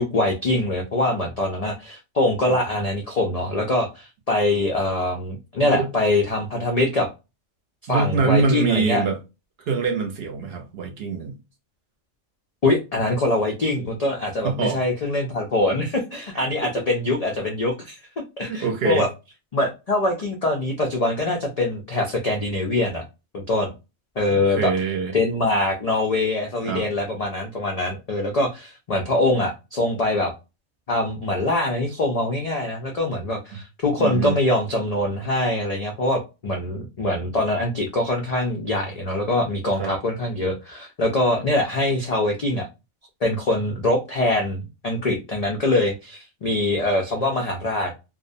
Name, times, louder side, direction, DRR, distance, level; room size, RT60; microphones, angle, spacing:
voice 1, 0.0-7.1 7.9-9.0 12.6-18.0 18.4-19.1 19.5-23.0 23.3-23.7 24.2-24.7 25.1-30.3 30.9-42.7 43.2-47.9, left 2 dB, 80° left, 0.3 m, -23 dB
voice 2, 7.9-9.2 9.7-11.3 14.4-14.8 16.3-16.5 18.4-19.1 24.3-25.2 26.7-26.9 34.0-34.4 39.8-39.9, right 5 dB, 60° right, 0.8 m, -24 dB
2.5 x 2.0 x 2.5 m
omnidirectional pair, 1.3 m